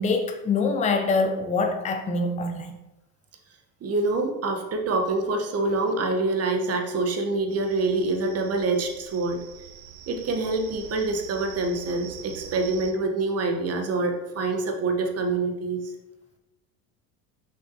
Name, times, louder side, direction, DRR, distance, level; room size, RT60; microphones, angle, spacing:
voice 1, 0.0-2.7, left 3 dB, 15° left, 4 dB, 0.7 m, -24 dB
voice 2, 3.8-9.4 10.1-15.8, right 3 dB, 30° right, 4 dB, 1.1 m, -26 dB
sound 1, 7.5-12.9, right 9 dB, 60° right, 0.9 m, -44 dB
5.9 x 5.8 x 2.8 m, 0.97 s
hypercardioid pair, 80°, 50 cm